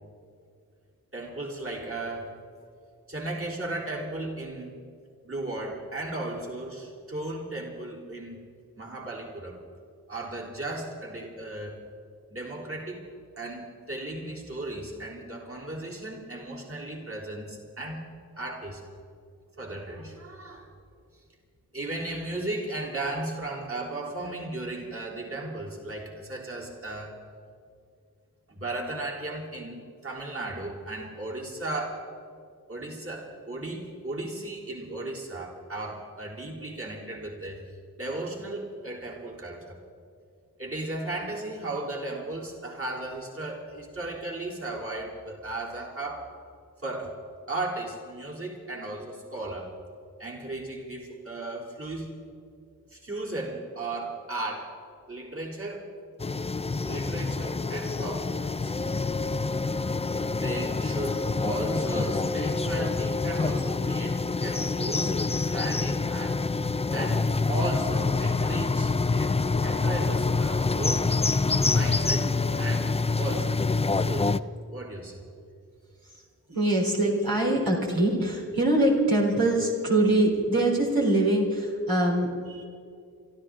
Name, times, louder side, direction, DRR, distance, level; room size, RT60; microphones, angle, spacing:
voice 1, 1.1-2.3 3.1-4.8 5.2-8.4 8.8-9.6 10.1-11.8 12.3-13.1 13.4-18.1 18.4-18.8 19.6-20.7 21.7-27.2 28.5-32.1 32.7-37.7 38.0-39.8 40.6-46.3 46.8-47.2 47.5-49.7 50.2-52.1 52.9-54.8 55.1-55.9 56.9-58.7 60.3-66.4 66.9-71.1 71.6-74.3 74.7-75.2, right 2 dB, 40° right, -3 dB, 3.7 m, -35 dB
sound 1, 56.2-74.4, left 3 dB, 15° left, 0.4 m, -26 dB
voice 2, 76.5-82.7, right 1 dB, 75° right, -3 dB, 3.6 m, -23 dB
25.5 x 13.5 x 3.8 m, 2.4 s
cardioid pair, 40°, 36 cm